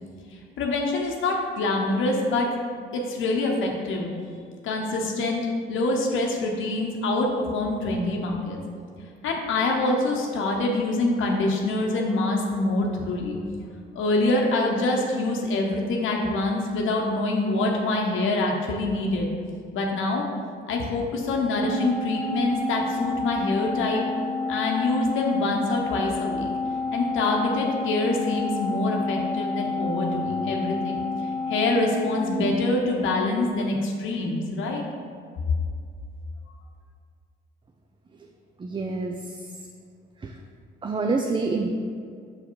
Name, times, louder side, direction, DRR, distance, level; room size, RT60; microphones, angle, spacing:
voice 1, 0.6-2.5 2.9-4.1 4.6-8.6 9.2-13.4 13.9-19.3 19.7-20.2 20.7-24.0 24.5-26.5 26.9-34.8, left 2 dB, 80° left, 0 dB, 0.9 m, -25 dB
Organ, 21.6-32.8, left 3 dB, 75° right, 1.5 m, -29 dB
voice 2, 38.6-39.4 40.2-40.4 40.8-41.7, right 3 dB, 25° right, 3 dB, 0.4 m, -27 dB
6.0 x 4.8 x 4.5 m, 2.2 s
cardioid pair, 90°, 20 cm